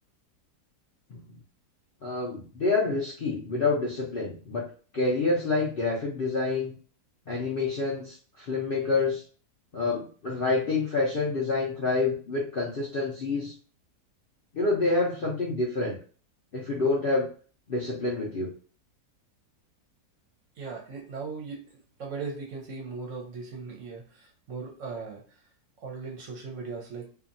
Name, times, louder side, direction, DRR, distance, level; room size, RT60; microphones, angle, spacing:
voice 1, 2.0-4.6 4.9-6.7 7.3-9.2 9.7-13.5 14.5-16.0 16.5-17.3 17.7-18.5, left 3 dB, 55° left, -5 dB, 0.6 m, -27 dB
voice 2, 20.6-21.6 22.0-25.4 25.8-27.1, right 4 dB, 60° right, 0 dB, 0.9 m, -38 dB
2.8 x 2.5 x 2.5 m, 0.40 s
omnidirectional pair, 1.7 m